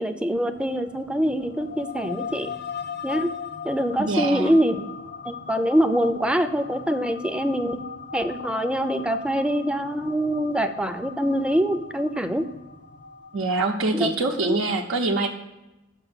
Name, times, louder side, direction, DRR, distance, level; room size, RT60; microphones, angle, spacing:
voice 1, 0.0-2.5 3.0-3.3 3.6-4.9 5.2-7.8 8.1-12.5 13.9-14.1 14.5-14.6, equal, 5° right, 8 dB, 0.5 m, -24 dB
sound 1, 0.5-14.5, left 6 dB, 55° left, 0.7 m, -39 dB
voice 2, 4.0-4.5 13.3-15.3, right 3 dB, 85° right, 0 dB, 0.7 m, -24 dB
7.0 x 5.2 x 5.6 m, 0.99 s
head